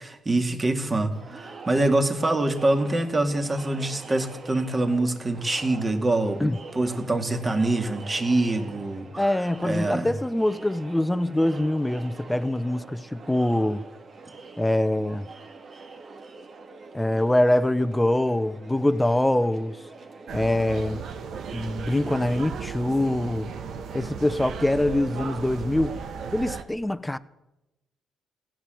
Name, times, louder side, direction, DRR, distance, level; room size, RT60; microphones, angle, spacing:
voice 1, 0.0-6.4 6.8-9.3 9.6-10.1, right 2 dB, 25° right, 2.0 m, -25 dB
Crowd, 1.1-21.1, right 3 dB, 45° right, 1.8 m, -45 dB
voice 2, 9.2-13.8 14.6-15.3 16.9-19.8 20.3-21.0 21.5-23.5 23.9-26.0 26.3-27.2, left 1 dB, 10° left, 0.7 m, -24 dB
sound 1, 20.3-26.6, right 6 dB, 65° right, 1.3 m, -35 dB
16.5 x 10.0 x 7.7 m
cardioid pair, 90°, 0 cm